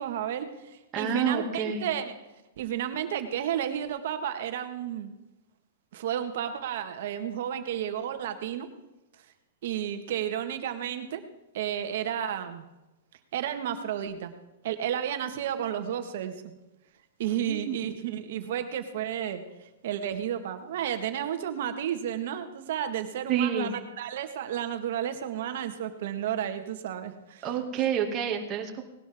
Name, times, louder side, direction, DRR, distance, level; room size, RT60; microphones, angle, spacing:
voice 1, 0.0-2.1 2.6-5.1 5.9-8.7 9.6-11.2 11.5-12.6 13.3-14.3 14.6-16.3 17.2-19.4 19.8-27.5, right 10 dB, 65° right, 8 dB, 1.7 m, -32 dB
voice 2, 0.9-1.9 17.2-18.0 23.3-23.7 27.4-28.8, right 7 dB, 25° right, 2 dB, 2.3 m, -29 dB
19.0 x 12.0 x 3.7 m, 1.0 s
hypercardioid pair, 145°, 0 cm